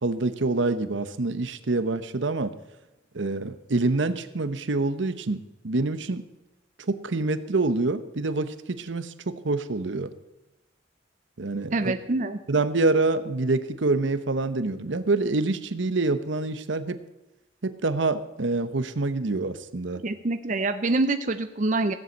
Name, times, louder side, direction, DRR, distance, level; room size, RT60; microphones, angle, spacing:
voice 1, 0.0-2.5 3.1-6.3 6.9-10.1 11.4-11.9 12.5-17.0 17.6-20.0, right 3 dB, 75° right, 12 dB, 0.9 m, -26 dB
voice 2, 11.7-12.4 20.0-21.9, right 2 dB, 40° right, 9 dB, 0.6 m, -25 dB
16.0 x 7.9 x 7.9 m, 0.97 s
head